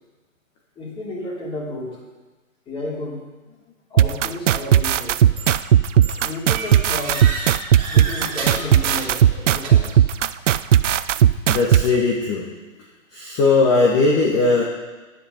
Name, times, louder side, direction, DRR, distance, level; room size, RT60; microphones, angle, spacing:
voice 1, 0.8-2.0 2.7-3.2 3.9-5.2 6.2-7.3 7.9-9.2 9.5-10.0, left 2 dB, 15° left, -4 dB, 3.2 m, -31 dB
sound 1, 4.0-11.8, right 10 dB, 60° right, 0.6 m, -15 dB
sound 2, 5.4-5.7 6.0-10.1, right 3 dB, 25° right, 2.9 m, -32 dB
voice 2, 11.5-12.5 13.1-14.6, left 3 dB, 30° left, -1 dB, 1.6 m, -19 dB
11.5 x 10.0 x 5.7 m, 1.2 s
hypercardioid pair, 135°, 41 cm